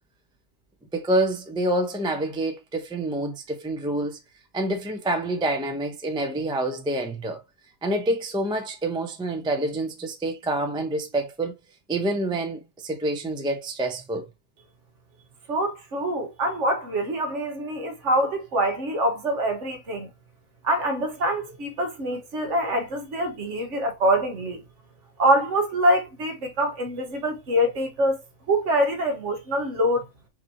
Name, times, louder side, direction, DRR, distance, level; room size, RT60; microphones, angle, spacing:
voice 1, 0.9-4.2 4.5-7.4 7.8-11.5 11.9-14.2, right 1 dB, 5° right, 0.5 m, -27 dB
voice 2, 15.5-20.1 20.6-24.6 25.2-28.2 28.5-30.1, right 1 dB, 55° right, 1.3 m, -24 dB
6.0 x 2.9 x 2.8 m
omnidirectional pair, 1.5 m